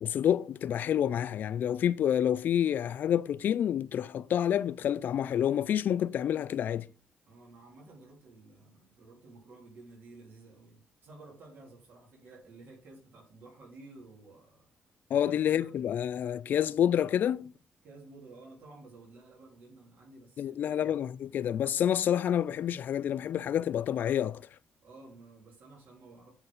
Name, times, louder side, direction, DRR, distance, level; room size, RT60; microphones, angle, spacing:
voice 1, 0.0-6.9 15.1-17.5 20.4-24.5, left 10 dB, 65° left, 0.3 m, -28 dB
voice 2, 7.3-14.7 15.1-15.8 17.8-21.0 24.8-26.3, right 3 dB, 65° right, 3.0 m, -53 dB
7.8 x 4.0 x 6.0 m
cardioid pair, 105°, 3 cm